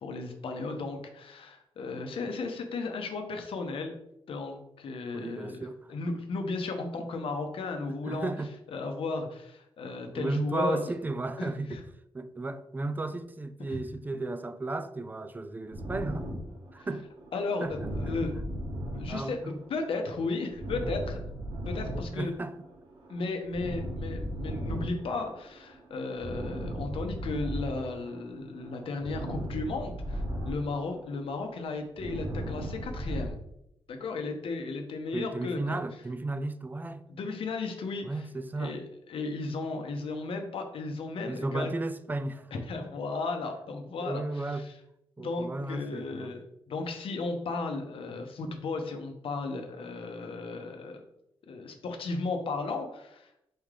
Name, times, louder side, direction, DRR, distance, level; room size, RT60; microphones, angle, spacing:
voice 1, 0.0-3.9 4.3-5.6 5.9-8.3 8.7-10.8 11.4-11.8 13.6-13.8 16.8-16.9 17.3-18.4 18.9-21.2 21.7-22.3 23.1-33.4 33.9-35.8 37.1-38.2 38.6-38.8 39.1-41.7 42.5-44.7 45.2-51.0 51.5-53.3, left 3 dB, 70° left, 0.8 m, -35 dB
voice 2, 5.1-5.9 8.1-8.5 10.1-11.8 12.1-16.3 16.7-17.0 17.6-18.1 19.1-19.5 22.1-22.5 35.1-37.0 38.0-38.8 41.3-42.5 44.0-44.7 45.2-46.3, right 2 dB, 20° right, 0.3 m, -34 dB
sound 1, 15.7-28.3 28.6-33.3, equal, 55° right, 1.3 m, -37 dB
4.2 x 3.3 x 3.7 m
cardioid pair, 105°, 10 cm